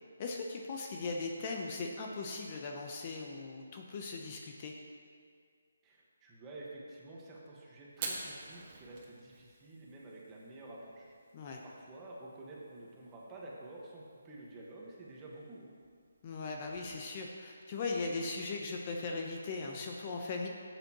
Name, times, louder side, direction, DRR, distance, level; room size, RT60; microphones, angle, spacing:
voice 1, 0.2-4.7 11.3-11.6 16.2-20.5, left 3 dB, 30° left, 1 dB, 0.8 m, -39 dB
voice 2, 5.8-11.1 11.6-15.7, right 2 dB, 15° right, -4 dB, 1.5 m, -50 dB
Fire, 7.9-17.1, right 4 dB, 35° right, 1.7 m, -50 dB
13.0 x 8.0 x 3.0 m, 2.1 s
hypercardioid pair, 155°, 0 cm